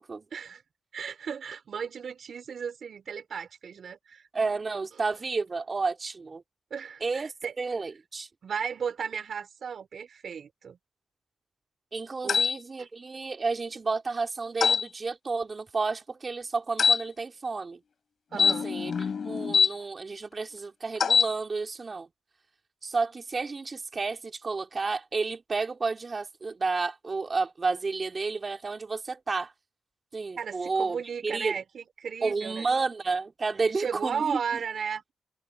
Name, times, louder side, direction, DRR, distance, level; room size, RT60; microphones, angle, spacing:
voice 1, 0.3-0.6 0.9-4.3 6.7-7.5 8.4-10.8 12.2-12.4 12.8-12.9 18.3-18.7 30.4-32.7 33.7-35.1, right 7 dB, 70° right, 6.1 m, -35 dB
voice 2, 4.3-6.4 7.0-8.3 11.9-17.8 18.4-22.1 22.8-29.5 30.1-31.6 32.2-34.4, right 4 dB, 40° right, 3.9 m, -31 dB
sound 1, 12.3-12.5 14.6-14.8 16.8-17.0 18.3-19.7 21.0-21.3, left 6 dB, 65° left, 6.7 m, -23 dB
cardioid pair, 65°, 0 cm